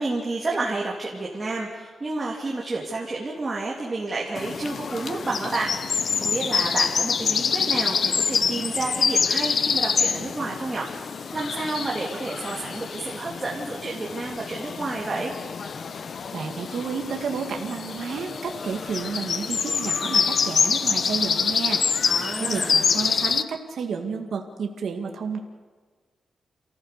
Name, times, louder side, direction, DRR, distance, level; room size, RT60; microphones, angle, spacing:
voice 1, 0.0-10.9 11.3-15.3 22.0-22.8, right 3 dB, 25° right, -3 dB, 2.6 m, -30 dB
sound 1, 4.4-23.4, left 6 dB, 50° left, 0.7 m, -26 dB
voice 2, 16.3-21.8 22.4-25.4, right 5 dB, 70° right, 3 dB, 2.0 m, -31 dB
28.5 x 15.5 x 6.7 m, 1.4 s
wide cardioid pair, 150°, 0 cm